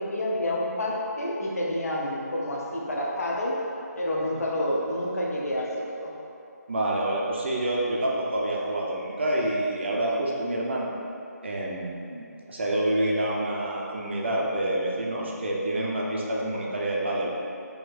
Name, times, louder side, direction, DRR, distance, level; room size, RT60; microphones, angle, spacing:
voice 1, 0.0-3.6 4.0-6.1, left 1 dB, 60° left, -4 dB, 0.7 m, -29 dB
voice 2, 6.7-10.9 11.4-12.2 12.5-17.3, right 1 dB, 40° right, -3 dB, 0.5 m, -27 dB
4.3 x 2.8 x 2.5 m, 2.6 s
figure-of-eight pair, 165°, 9 cm